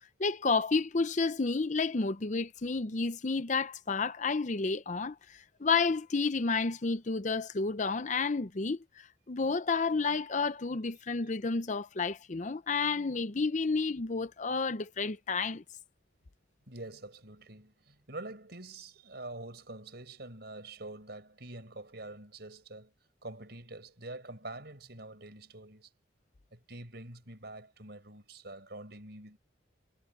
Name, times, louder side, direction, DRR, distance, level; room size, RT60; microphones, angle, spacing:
voice 1, 0.2-15.6, left 4 dB, 40° left, 0.6 m, -31 dB
voice 2, 16.7-22.9 23.2-25.9 26.5-29.4, right 2 dB, 55° right, 5.6 m, -46 dB
head